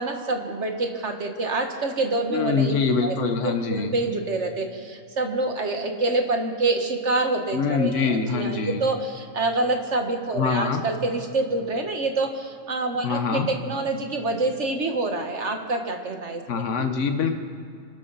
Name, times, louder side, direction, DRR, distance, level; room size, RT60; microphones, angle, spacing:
voice 1, 0.0-2.7 3.0-16.9, right 2 dB, 65° right, 4 dB, 1.8 m, -27 dB
voice 2, 2.3-3.9 7.5-8.8 10.3-10.8 13.0-13.5 16.5-17.4, left 5 dB, 75° left, 6 dB, 1.4 m, -24 dB
26.0 x 12.5 x 4.1 m, 2.4 s
omnidirectional pair, 1.3 m